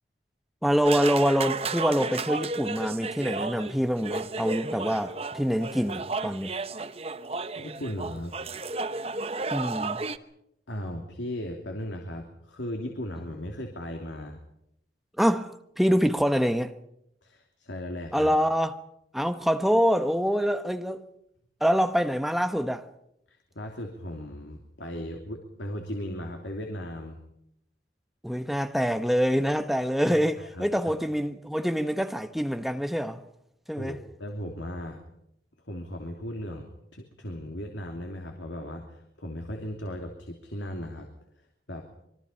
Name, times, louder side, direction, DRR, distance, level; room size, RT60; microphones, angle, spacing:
voice 1, 0.6-6.5 9.5-10.0 15.2-16.7 18.1-18.7 19.1-21.0 21.6-22.8 28.2-33.2 33.7-34.0, equal, ahead, 1.0 m, -25 dB
sound 1, 0.8-10.2, right 3 dB, 35° right, 0.9 m, -33 dB
voice 2, 7.5-8.4 10.7-14.4 17.2-18.4 23.3-27.2 30.1-31.0 33.7-35.0 35.6-41.1 41.7-41.9, equal, 90° left, 3.0 m, -37 dB
25.5 x 23.5 x 5.7 m
head